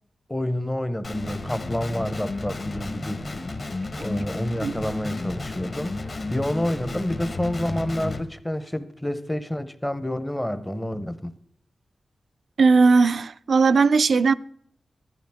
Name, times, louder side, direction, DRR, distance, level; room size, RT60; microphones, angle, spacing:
voice 1, 0.3-3.3 3.9-6.0 6.3-11.3, left 1 dB, 10° left, 0.7 m, -28 dB
Guitar, 1.0-8.2, left 2 dB, 40° left, 1.2 m, -32 dB
voice 2, 12.6-14.3, right 4 dB, 60° right, 0.4 m, -18 dB
15.5 x 13.0 x 3.5 m
wide cardioid pair, 160°, 0 cm